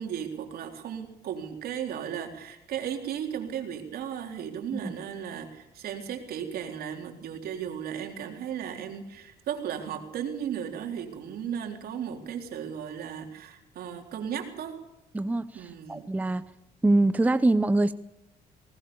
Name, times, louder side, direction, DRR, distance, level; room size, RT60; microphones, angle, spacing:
voice 1, 0.0-14.8 15.5-16.0, right 8 dB, 65° right, 4 dB, 4.0 m, -35 dB
voice 2, 15.1-16.5 16.8-17.9, right 2 dB, 10° right, 13 dB, 0.7 m, -24 dB
20.5 x 19.0 x 7.1 m, 0.88 s
cardioid pair, 110°, 17 cm